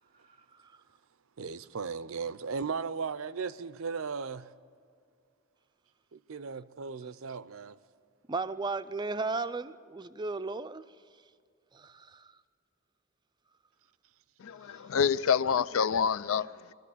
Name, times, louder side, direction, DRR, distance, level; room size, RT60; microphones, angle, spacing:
voice 1, 1.4-4.5 6.1-7.8, right 5 dB, 70° right, 0.5 m, -36 dB
voice 2, 8.3-10.8 11.7-12.3 14.7-14.8, right 3 dB, 20° right, 0.4 m, -35 dB
voice 3, 14.4-16.7, left 7 dB, 75° left, 0.4 m, -27 dB
23.0 x 13.5 x 8.3 m
head